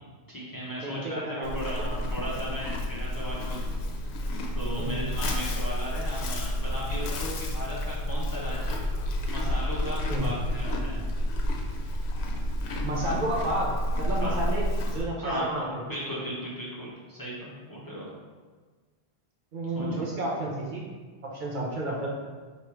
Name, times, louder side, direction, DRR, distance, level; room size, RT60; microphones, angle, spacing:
voice 1, 0.3-4.1 4.5-8.8 9.2-11.0 14.2-14.4 15.2-18.1 19.7-20.0, equal, 20° left, -7 dB, 0.8 m, -36 dB
voice 2, 0.8-1.9 4.8-5.1 10.1-10.3 12.8-15.8 19.5-20.9 21.3-22.1, right 1 dB, 55° right, -3 dB, 0.8 m, -31 dB
Livestock farm animals working animals, 1.4-15.0, left 1 dB, 90° left, 0.9 m, -30 dB
3.1 x 2.9 x 4.5 m, 1.4 s
omnidirectional pair, 1.1 m